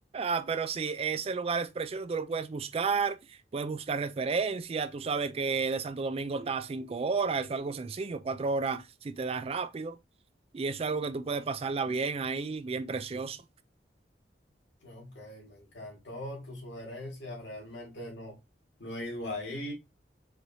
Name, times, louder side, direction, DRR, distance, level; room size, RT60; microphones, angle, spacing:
voice 1, 0.1-10.0 10.5-13.4, right 4 dB, 35° right, 0.4 m, -32 dB
voice 2, 14.8-18.4 18.8-19.7, left 1 dB, 85° left, 1.9 m, -40 dB
4.8 x 3.1 x 2.7 m
head